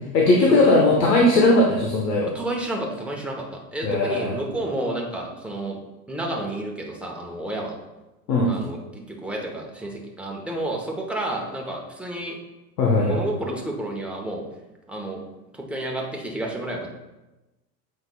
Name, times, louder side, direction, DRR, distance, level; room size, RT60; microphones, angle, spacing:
voice 1, 0.0-2.3 3.8-4.3 8.3-8.5 12.8-13.2, left 2 dB, 80° left, -1 dB, 1.2 m, -18 dB
voice 2, 2.3-5.8 6.1-7.7 8.5-12.4 13.0-14.4 14.9-15.2 15.5-16.9, right 1 dB, ahead, -1 dB, 0.9 m, -30 dB
7.7 x 5.4 x 2.3 m, 1.0 s
hypercardioid pair, 100°, 49 cm